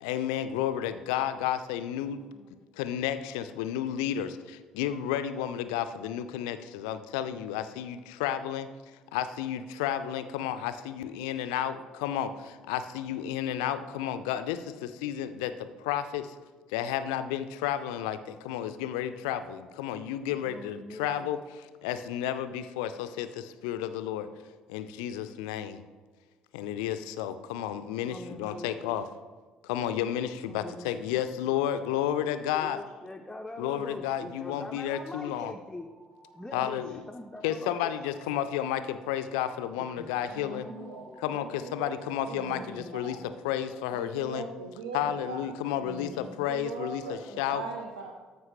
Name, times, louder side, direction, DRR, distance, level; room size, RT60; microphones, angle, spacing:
voice 1, 0.0-2.2 2.8-8.7 9.1-16.4 16.7-24.3 24.7-25.8 26.5-29.1 29.6-32.8 33.6-35.5 36.5-37.0 37.4-40.7 41.2-44.5 44.9-47.6, left 10 dB, 65° left, 11 dB, 0.4 m, -32 dB
voice 2, 2.3-2.6 20.4-21.3 28.0-29.0 30.5-31.2 32.5-35.9 36.3-37.9 39.8-41.2 42.2-43.3 43.6-43.8 45.8-46.5 47.2-47.5, left 1 dB, 10° left, 4 dB, 0.5 m, -44 dB
sound 1, 32.9-43.4, right 1 dB, 50° right, 2.2 m, -58 dB
voice 3, 40.1-41.1 41.3-43.4 43.9-45.5 46.5-48.1, right 5 dB, 75° right, 3 dB, 0.5 m, -41 dB
13.5 x 4.7 x 3.0 m, 1.4 s
figure-of-eight pair, 50°, 4 cm